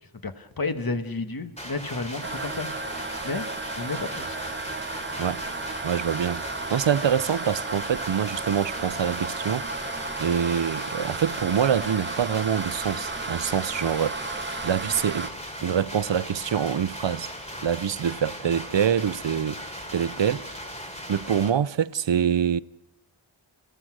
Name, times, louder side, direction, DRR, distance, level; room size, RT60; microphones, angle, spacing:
voice 1, 0.2-2.9 3.2-3.5 3.7-4.4, left 3 dB, 45° left, 1.4 m, -31 dB
sound 1, 1.6-21.5, equal, 15° left, 2.9 m, -38 dB
sound 2, 2.2-15.3, right 3 dB, 25° right, 0.7 m, -34 dB
voice 2, 5.8-9.9 10.2-15.3 15.6-17.3 17.6-20.7 21.1-22.6, right 8 dB, 65° right, 0.6 m, -25 dB
29.0 x 16.0 x 6.2 m
wide cardioid pair, 50°, 48 cm